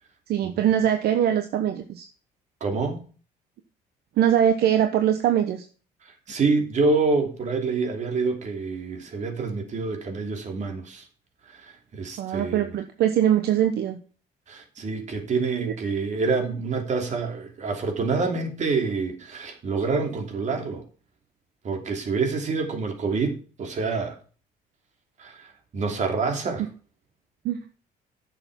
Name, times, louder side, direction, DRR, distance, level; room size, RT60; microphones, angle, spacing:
voice 1, 0.3-2.1 4.2-5.6 12.2-14.0 15.6-15.7 27.4-27.6, right 10 dB, 70° right, 1.0 m, -22 dB
voice 2, 2.6-3.0 6.0-11.1 11.4-12.8 14.5-20.8 21.6-24.2 25.2-26.7, right 4 dB, 45° right, 3.0 m, -27 dB
10.5 x 6.9 x 5.4 m
cardioid pair, 110°, 17 cm